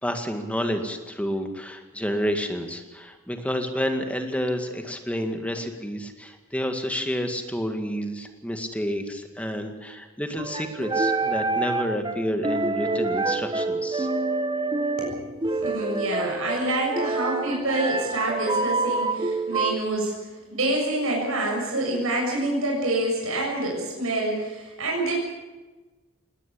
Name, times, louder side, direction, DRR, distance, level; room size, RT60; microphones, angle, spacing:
voice 1, 0.0-14.1, equal, 5° left, 5 dB, 2.0 m, -29 dB
sound 1, 10.4-19.8, right 3 dB, 20° right, 1.0 m, -27 dB
voice 2, 15.6-20.1 20.5-25.1, right 2 dB, 75° right, -1 dB, 7.0 m, -27 dB
20.5 x 18.5 x 8.6 m, 1.2 s
head